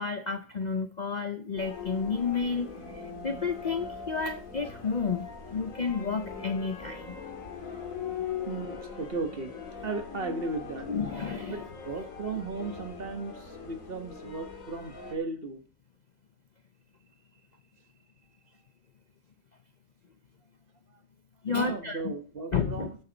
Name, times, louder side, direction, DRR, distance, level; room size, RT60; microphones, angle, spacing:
voice 1, 0.0-7.2 10.9-11.6 21.4-22.1 22.5-22.9, left 5 dB, 45° left, 8 dB, 0.6 m, -31 dB
sound 1, 1.6-15.2, left 6 dB, 75° left, 2.2 m, -41 dB
voice 2, 8.2-9.6 9.8-10.9 11.5-15.6 20.9-21.0 21.5-23.0, right 3 dB, 45° right, 8 dB, 1.4 m, -36 dB
13.0 x 8.5 x 4.0 m, 0.39 s
omnidirectional pair, 1.4 m